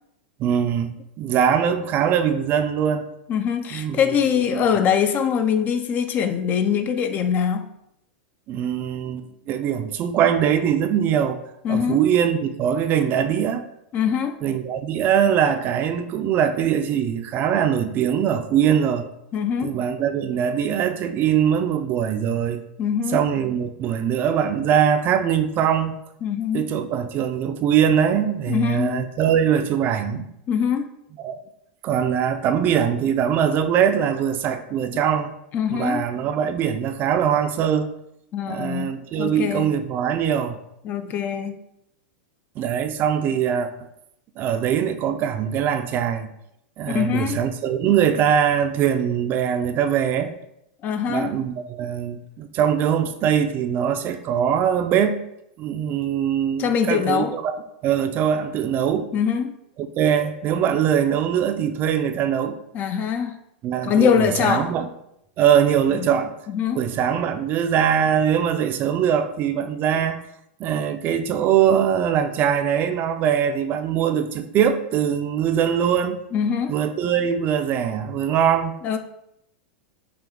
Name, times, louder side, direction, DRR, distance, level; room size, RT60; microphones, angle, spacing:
voice 1, 0.4-3.1 3.7-4.0 4.4-4.6 8.5-11.4 11.7-13.6 14.4-19.0 19.6-22.6 23.1-26.0 26.5-30.3 31.2-31.4 31.8-35.3 35.7-37.9 38.5-40.6 42.6-43.7 44.4-46.3 46.8-50.3 51.1-55.2 55.6-57.6 57.8-59.1 59.8-62.6 63.6-64.9 65.4-66.3 66.7-70.2 70.6-76.2 76.7-78.7, right 8 dB, 35° right, 0.4 m, -22 dB
voice 2, 3.3-7.7 11.6-12.0 13.9-14.4 19.3-19.8 22.8-23.2 26.2-26.7 28.5-29.1 30.5-30.9 35.5-36.1 38.3-39.7 40.8-41.6 46.9-47.4 50.8-51.3 56.6-57.4 59.1-59.5 62.7-63.4 63.8-64.8 66.0-66.1 66.5-66.8 76.3-76.7 78.8-79.0, left 7 dB, 35° left, 0.4 m, -23 dB
5.8 x 2.3 x 3.6 m
hypercardioid pair, 120°, 5 cm